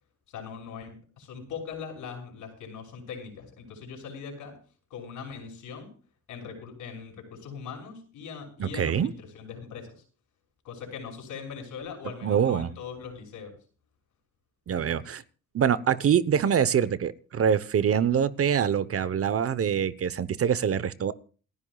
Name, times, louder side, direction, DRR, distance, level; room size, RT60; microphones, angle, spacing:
voice 1, 0.3-4.6 4.9-5.9 6.3-10.0 10.6-13.5, left 6 dB, 80° left, 2 dB, 6.4 m, -40 dB
voice 2, 8.6-9.1 12.2-12.7 14.7-15.2 15.5-21.1, right 8 dB, 50° right, 16 dB, 0.9 m, -24 dB
28.0 x 11.0 x 2.4 m, 0.39 s
cardioid pair, 90°, 30 cm